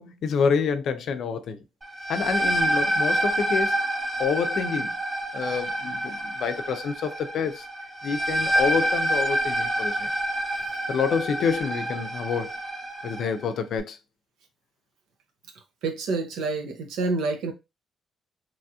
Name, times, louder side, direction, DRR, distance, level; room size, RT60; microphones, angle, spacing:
voice 1, 0.0-1.6 2.1-3.7 4.2-4.9 5.3-7.6 8.0-10.1 10.9-12.5 13.0-14.0, left 6 dB, 65° left, 0.5 m, -27 dB
sound 1, 1.8-13.3, right 1 dB, 20° right, 0.9 m, -27 dB
voice 2, 15.8-17.5, right 3 dB, 90° right, 0.6 m, -28 dB
3.0 x 2.7 x 2.3 m
cardioid pair, 90°, 0 cm